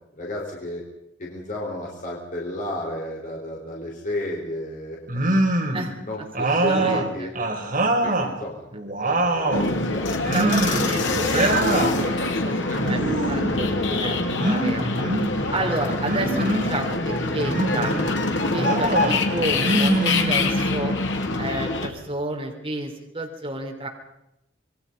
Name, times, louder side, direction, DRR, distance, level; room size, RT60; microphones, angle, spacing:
voice 1, 0.1-0.8 1.2-5.0 6.0-7.3 8.0-8.7 9.0-10.6 12.7-12.8, left 1 dB, 45° left, -2 dB, 4.1 m, -33 dB
sound 1, 5.1-5.9 6.3-8.3 8.7-9.7 10.2-10.9 11.2-11.9 12.8-13.6 14.4-15.3 16.0-16.8 17.4-18.0 18.6-19.2 19.6-20.7, right 1 dB, 45° right, 4.0 m, -24 dB
voice 2, 6.4-7.3 10.1-14.9 15.5-17.9 18.4-20.9 21.4-23.9, right 2 dB, 30° right, 2 dB, 3.5 m, -30 dB
sound 2, 9.5-21.9, left 2 dB, 70° left, 2.9 m, -24 dB
27.5 x 21.5 x 5.4 m, 0.85 s
head